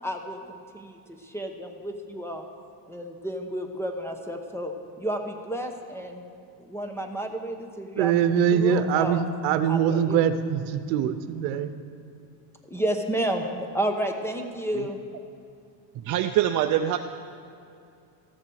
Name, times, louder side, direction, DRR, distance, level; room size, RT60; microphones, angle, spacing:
voice 1, 0.0-2.4 2.9-6.2 6.6-9.2 9.7-10.2 12.7-15.0, right 1 dB, 5° left, 4 dB, 0.9 m, -31 dB
voice 2, 8.0-11.7, right 8 dB, 85° right, 11 dB, 0.9 m, -23 dB
voice 3, 16.1-17.0, right 11 dB, 40° right, 5 dB, 0.5 m, -24 dB
13.5 x 7.3 x 6.4 m, 2.5 s
supercardioid pair, 120°, 49 cm